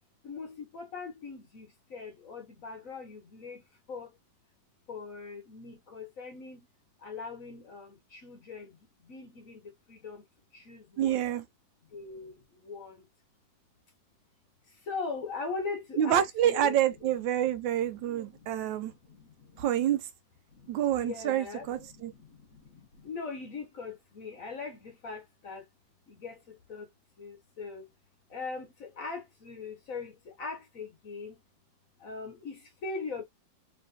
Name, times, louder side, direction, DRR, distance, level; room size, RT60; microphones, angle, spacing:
voice 1, 0.2-4.2 4.9-6.7 7.0-10.2 10.5-11.2 11.9-13.1 14.7-16.8 17.4-17.5 18.0-19.7 20.5-25.7 26.1-26.9 27.2-27.9 28.3-31.4 32.0-33.2, left 4 dB, 55° left, 1.1 m, -41 dB
voice 2, 11.0-11.5 16.0-18.9 19.6-20.1 20.7-22.1, right 11 dB, 75° right, 1.2 m, -27 dB
3.2 x 3.0 x 2.7 m
omnidirectional pair, 2.1 m